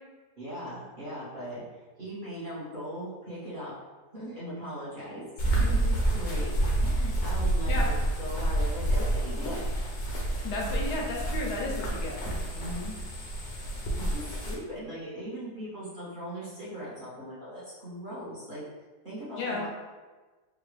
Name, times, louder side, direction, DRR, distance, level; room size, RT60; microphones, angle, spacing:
voice 1, 0.4-3.7 4.1-6.5 6.8-9.6 12.5-13.0 14.0-18.6 19.0-19.7, right 1 dB, 35° right, -10 dB, 1.0 m, -39 dB
sound 1, 5.4-14.5, right 1 dB, 60° left, 0.8 m, -28 dB
voice 2, 10.4-12.2 19.4-19.7, left 2 dB, 80° left, -1 dB, 1.2 m, -33 dB
3.6 x 2.3 x 3.2 m, 1.3 s
omnidirectional pair, 1.7 m